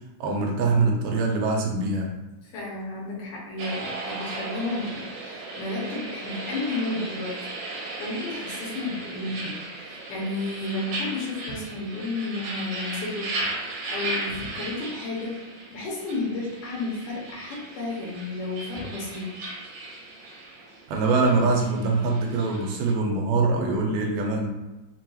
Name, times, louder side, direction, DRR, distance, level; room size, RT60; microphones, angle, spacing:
voice 1, 0.2-2.1 20.9-24.5, right 3 dB, 90° right, 0 dB, 2.2 m, -23 dB
voice 2, 2.4-13.3 13.6-15.4 15.7-19.4, left 2 dB, 80° left, -3 dB, 2.5 m, -32 dB
sound 1, 3.6-22.9, right 2 dB, 70° right, 1.9 m, -36 dB
5.7 x 2.3 x 2.9 m, 1.1 s
omnidirectional pair, 3.8 m